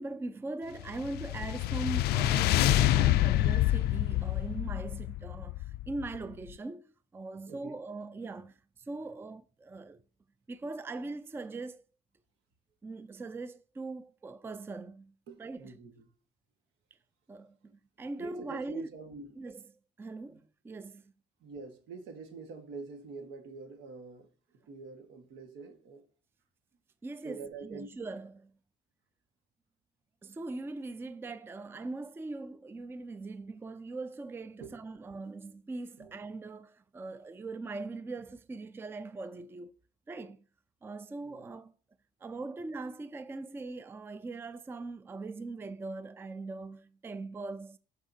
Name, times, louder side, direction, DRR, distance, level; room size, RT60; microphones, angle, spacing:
voice 1, 0.0-10.0 10.5-11.8 12.8-15.1 15.4-15.7 17.3-18.9 19.4-19.6 20.0-21.0 27.0-28.5 30.2-39.8 40.1-40.4 40.8-41.7 42.2-47.8, right 3 dB, 15° right, 0.4 m, -41 dB
sound 1, 0.8-6.2, left 14 dB, 70° left, 0.4 m, -27 dB
voice 2, 7.5-7.8 15.3-16.0 18.2-19.4 20.3-20.4 21.4-24.3 24.7-26.0 27.2-27.9 34.6-34.7 36.0-36.1 41.2-41.4, right 4 dB, 85° right, 1.5 m, -46 dB
12.5 x 4.8 x 2.7 m
cardioid pair, 110°, 17 cm